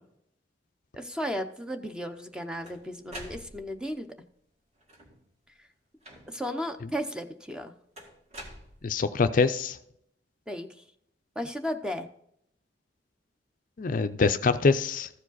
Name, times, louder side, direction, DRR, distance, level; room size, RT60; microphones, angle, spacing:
voice 1, 0.9-4.1 6.3-7.7 10.5-10.7 11.4-12.1, equal, 5° right, 7 dB, 0.6 m, -34 dB
sound 1, 2.1-3.9 4.8-5.3 6.0-6.6 8.0-9.2, right 1 dB, 40° right, 2.1 m, -46 dB
voice 2, 8.8-9.8 13.8-15.1, left 4 dB, 50° left, 10 dB, 0.4 m, -24 dB
14.5 x 5.0 x 4.0 m, 0.73 s
head